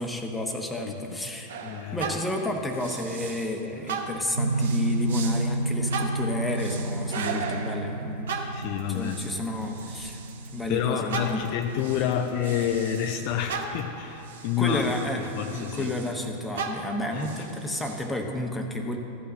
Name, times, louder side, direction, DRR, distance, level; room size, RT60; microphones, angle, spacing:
voice 1, 0.0-1.6 1.9-8.4 8.9-10.2 10.5-11.4 14.6-19.0, left 1 dB, 5° left, 2 dB, 1.1 m, -31 dB
voice 2, 0.8-1.2 1.6-2.2 8.5-9.2 10.7-14.9 15.4-15.9 17.1-17.5, left 10 dB, 45° left, 4 dB, 0.6 m, -29 dB
sound 1, 1.5-3.6 3.9-10.7 11.1-16.2 16.5-18.1, right 4 dB, 60° right, 1.0 m, -37 dB
sound 2, 4.3-13.1, right 2 dB, 80° right, 0.4 m, -31 dB
sound 3, 8.6-13.9, right 5 dB, 35° right, 1.3 m, -51 dB
13.5 x 5.7 x 7.5 m, 2.9 s
figure-of-eight pair, 90°, 0 cm